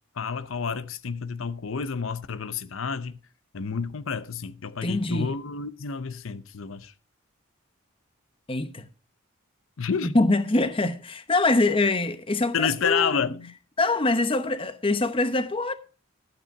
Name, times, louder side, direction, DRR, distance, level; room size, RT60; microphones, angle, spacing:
voice 1, 0.2-3.2 3.5-6.9 9.8-10.1 12.5-13.5, left 6 dB, 75° left, 0.7 m, -29 dB
voice 2, 4.8-5.3 8.5-8.9 10.0-13.3 13.8-15.7, left 2 dB, 25° left, 0.9 m, -24 dB
12.0 x 8.7 x 4.7 m
head